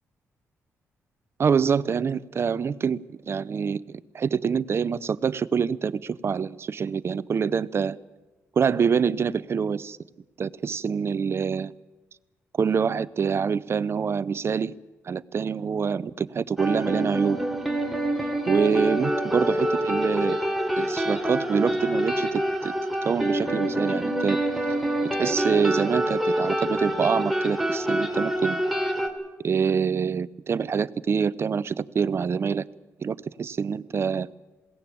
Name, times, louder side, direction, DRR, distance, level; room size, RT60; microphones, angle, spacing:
voice 1, 1.4-3.0 3.3-8.0 8.6-10.0 10.4-11.7 12.6-14.7 15.1-17.4 18.5-20.4 20.8-22.7 23.0-24.4 25.2-28.6 29.4-32.7 33.0-34.3, right 6 dB, 50° right, 19 dB, 0.6 m, -25 dB
sound 1, 16.6-29.1, right 1 dB, ahead, 3.1 m, -26 dB
21.0 x 17.5 x 8.6 m, 1.2 s
cardioid pair, 75°, 6 cm